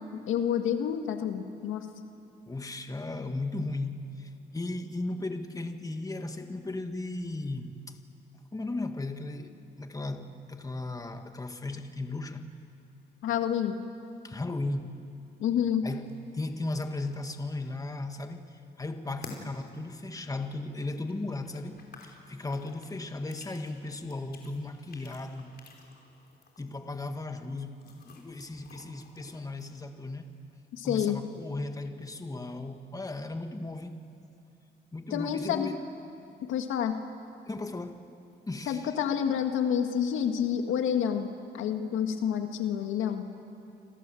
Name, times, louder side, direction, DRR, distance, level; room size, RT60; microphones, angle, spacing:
voice 1, 0.1-1.9 13.2-13.8 15.4-15.9 30.7-31.2 35.1-35.7 36.4-36.9 38.7-43.3, left 8 dB, 85° left, 6 dB, 2.0 m, -29 dB
voice 2, 2.5-8.0 8.5-12.5 14.2-15.0 15.8-18.4 18.8-25.5 26.6-30.3 30.8-34.0 34.9-35.8 37.5-38.1 38.5-38.9, left 2 dB, 15° left, 6 dB, 1.9 m, -36 dB
sound 1, 15.9-29.7, left 3 dB, 55° left, 5.0 m, -53 dB
29.0 x 26.0 x 7.8 m, 2.6 s
cardioid pair, 90°, 20 cm